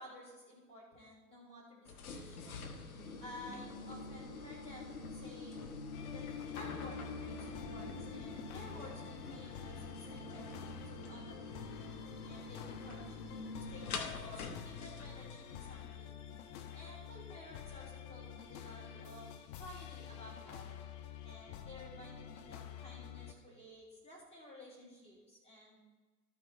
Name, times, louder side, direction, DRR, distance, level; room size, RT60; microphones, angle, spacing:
voice 1, 0.0-2.7 3.2-5.7 6.1-11.7 12.3-16.2 16.7-19.3 19.6-20.8 21.2-25.8, equal, 15° left, -5 dB, 3.1 m, -54 dB
sound 1, 1.8-15.8, left 3 dB, 65° left, 1.1 m, -46 dB
sound 2, 5.9-23.3, left 9 dB, 30° left, 0.6 m, -49 dB
12.5 x 6.0 x 4.2 m, 1.3 s
figure-of-eight pair, 95°, 47 cm